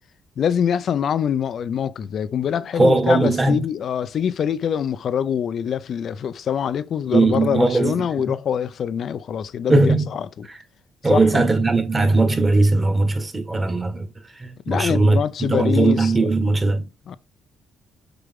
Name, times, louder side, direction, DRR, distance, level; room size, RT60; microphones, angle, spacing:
voice 1, 0.4-10.5 11.1-11.5 14.7-16.3 17.1-17.2, left 8 dB, 60° left, 0.6 m, -24 dB
voice 2, 2.7-3.6 7.1-8.3 9.7-10.1 10.5-10.6 11.0-14.1 14.4-16.9, right 3 dB, 25° right, 1.8 m, -19 dB
6.8 x 4.9 x 3.7 m
cardioid pair, 90°, 0 cm